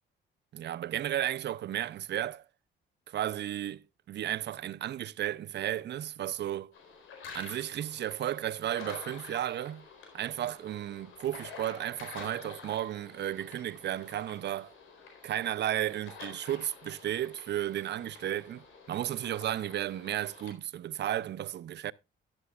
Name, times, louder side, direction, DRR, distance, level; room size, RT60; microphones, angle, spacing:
voice 1, 0.5-2.4 3.1-6.7 7.3-9.9 10.1-14.7 15.2-21.9, right 12 dB, 60° right, 0.6 m, -34 dB
sound 1, 6.7-20.5, left 5 dB, 85° left, 4.3 m, -49 dB
12.5 x 11.5 x 2.4 m
cardioid pair, 90°, 20 cm